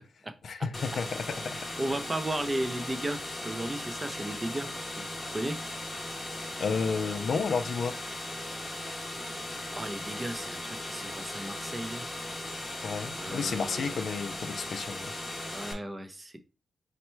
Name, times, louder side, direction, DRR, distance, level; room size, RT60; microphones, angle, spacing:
voice 1, 0.4-1.6 6.6-8.0 12.8-15.1, left 5 dB, 60° left, 0.4 m, -31 dB
sound 1, 0.7-15.7, left 1 dB, 15° left, 0.8 m, -38 dB
voice 2, 1.5-5.6 9.7-12.1 13.2-14.0 15.5-16.4, right 1 dB, 20° right, 0.5 m, -35 dB
4.2 x 2.2 x 4.4 m
wide cardioid pair, 125°, 0 cm